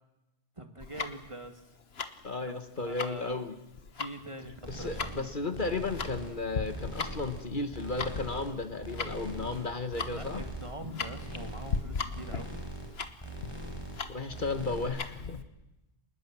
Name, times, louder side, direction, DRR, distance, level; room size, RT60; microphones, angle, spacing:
voice 1, 0.6-1.8 2.4-2.6 2.9-3.4 3.9-5.3 10.1-12.5, right 1 dB, 30° right, 6 dB, 2.0 m, -44 dB
Tick-tock, 0.8-15.4, left 5 dB, 70° left, 1.5 m, -39 dB
voice 2, 2.2-3.5 4.7-10.4 14.1-15.4, left 3 dB, 50° left, 9 dB, 1.5 m, -34 dB
sound 1, 4.6-5.2 5.5-6.3 6.6-7.4 7.7-8.5 8.8-9.6 9.9-10.7 11.0-11.8 12.1-12.9 13.2-14.0 14.3-14.9, right 1 dB, 20° left, 6.1 m, -41 dB
sound 2, 9.4-10.2 10.8-11.4 11.6-11.8 12.1-12.5, equal, 70° right, 4.4 m, -49 dB
26.0 x 20.0 x 7.5 m, 0.94 s
omnidirectional pair, 1.1 m